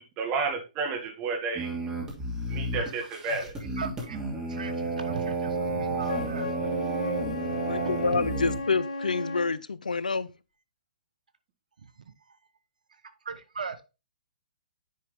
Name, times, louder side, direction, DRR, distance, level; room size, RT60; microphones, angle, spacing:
voice 1, 0.0-1.7 2.5-3.5, right 4 dB, 30° right, 2.1 m, -31 dB
sound 1, 1.5-8.6, right 3 dB, 15° right, 2.7 m, -32 dB
voice 2, 2.7-3.4 3.8-4.2 4.5-8.2 13.2-13.8, right 6 dB, 75° right, 1.1 m, -39 dB
Wind instrument woodwind instrument, 6.0-9.6, left 3 dB, 65° left, 1.1 m, -35 dB
voice 3, 7.6-10.3, left 4 dB, 90° left, 0.5 m, -28 dB
9.5 x 4.4 x 3.5 m
hypercardioid pair, 130°, 4 cm